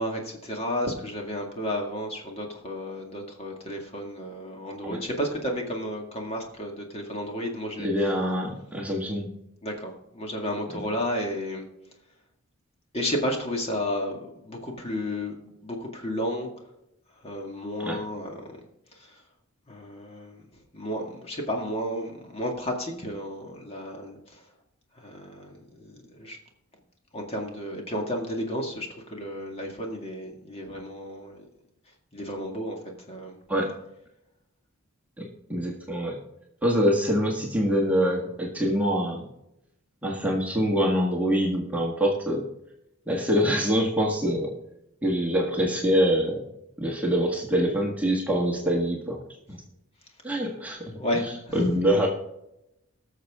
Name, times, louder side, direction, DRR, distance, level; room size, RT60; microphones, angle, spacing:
voice 1, 0.0-8.1 9.6-11.7 12.9-15.3 15.6-16.5 17.2-18.3 18.9-19.2 19.7-20.4 20.7-24.4 25.0-26.4 27.1-31.5 32.1-32.8 33.1-33.4 51.0-51.7, equal, 25° left, 1 dB, 2.0 m, -32 dB
voice 2, 7.8-9.3 10.7-10.9 17.8-18.0 33.5-33.7 35.2-36.2 36.6-39.3 40.0-42.5 43.1-44.5 45.0-46.5 46.8-49.2 49.5-49.6 50.2-50.8 51.1-52.1, equal, 5° right, -1 dB, 1.6 m, -25 dB
19.5 x 6.8 x 3.6 m, 0.85 s
head